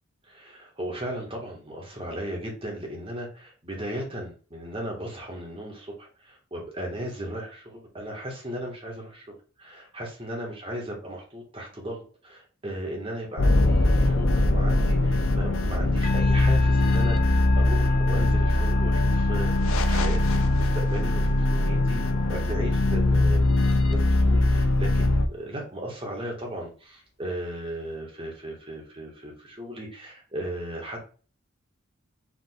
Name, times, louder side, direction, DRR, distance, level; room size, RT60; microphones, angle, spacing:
voice 1, 0.2-23.6 23.9-31.1, right 1 dB, 25° right, 0 dB, 1.3 m, -36 dB
sound 1, 13.4-25.3, left 2 dB, 80° left, 0.6 m, -21 dB
Musical instrument, 16.0-23.7, left 4 dB, 30° left, 0.7 m, -38 dB
4.9 x 2.5 x 3.9 m, 0.38 s
head